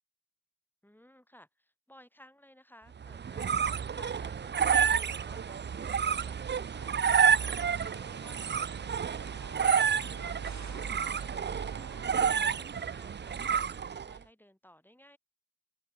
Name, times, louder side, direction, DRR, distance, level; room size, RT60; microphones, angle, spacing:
voice 1, 0.8-15.2, left 1 dB, 5° left, 7.4 m, -59 dB
sound 1, 3.0-14.2, right 7 dB, 30° right, 0.4 m, -29 dB
sound 2, 6.7-12.6, right 5 dB, 50° right, 2.6 m, -48 dB
open air
wide cardioid pair, 95°, 36 cm